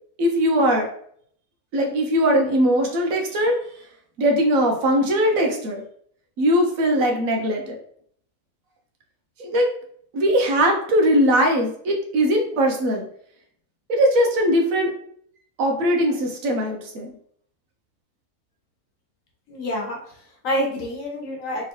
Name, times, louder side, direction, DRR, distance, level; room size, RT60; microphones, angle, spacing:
voice 1, 0.2-0.9 1.7-3.6 4.2-5.8 6.4-7.8 9.4-9.7 10.1-13.0 13.9-14.9 15.6-17.1, equal, 65° right, 2 dB, 1.1 m, -20 dB
voice 2, 19.5-21.7, equal, 65° left, -1 dB, 1.2 m, -28 dB
3.6 x 2.9 x 2.9 m, 0.63 s
omnidirectional pair, 1.6 m